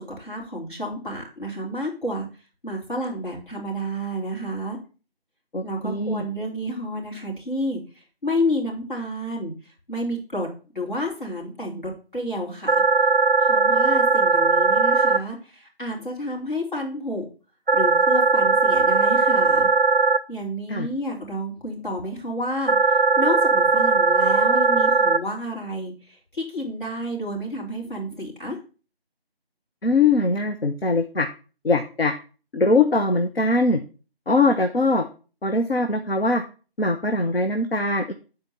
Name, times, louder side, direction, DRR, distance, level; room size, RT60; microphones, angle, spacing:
voice 1, 0.2-2.3 2.6-4.8 5.6-7.8 8.2-9.5 9.9-10.5 10.7-12.8 13.4-17.3 17.7-19.7 20.3-28.6, equal, 55° left, -2 dB, 3.6 m, -30 dB
voice 2, 5.5-6.2 20.7-20.9 29.8-31.3 31.6-32.1 32.5-33.8 34.3-35.1 35.4-36.4 36.8-38.1, left 3 dB, 70° left, 6 dB, 1.0 m, -21 dB
sound 1, 12.7-15.2 17.7-20.2 22.7-25.2, right 4 dB, 55° right, 0.5 m, -18 dB
7.8 x 4.5 x 6.8 m, 0.36 s
figure-of-eight pair, 175°, 31 cm